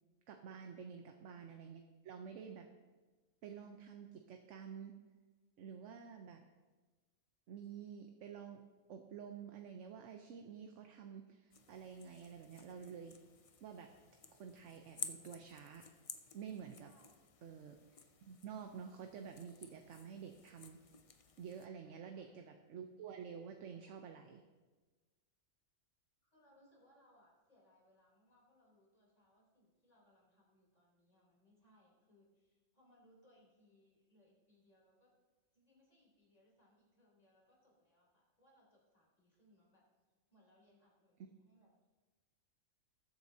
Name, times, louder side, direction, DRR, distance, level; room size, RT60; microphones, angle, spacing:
voice 1, 0.3-2.7 3.4-5.0 5.6-6.4 7.5-13.1 13.6-13.9 14.3-15.9 16.3-16.9 17.4-20.8 21.4-24.4 41.2-41.3, right 7 dB, 70° right, 4 dB, 1.0 m, -50 dB
sound 1, 11.5-21.7, left 5 dB, 60° left, 0.3 m, -53 dB
voice 2, 16.8-17.2 21.8-22.2 26.2-35.1 35.5-39.8 40.3-41.9, left 1 dB, 30° left, -4 dB, 3.5 m, -70 dB
19.5 x 8.0 x 2.8 m, 1.3 s
omnidirectional pair, 1.4 m